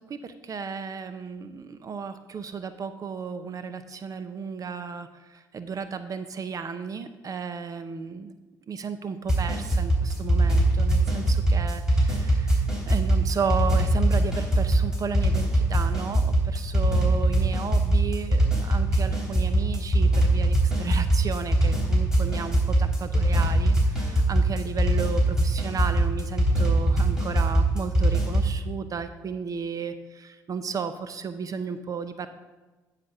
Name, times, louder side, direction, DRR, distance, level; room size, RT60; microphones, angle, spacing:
voice 1, 0.0-8.3 8.7-32.3, right 6 dB, 45° right, 11 dB, 0.6 m, -34 dB
sound 1, 9.3-28.5, right 1 dB, 5° right, 3.2 m, -22 dB
9.6 x 4.1 x 6.4 m, 1.2 s
hypercardioid pair, 60°, 9 cm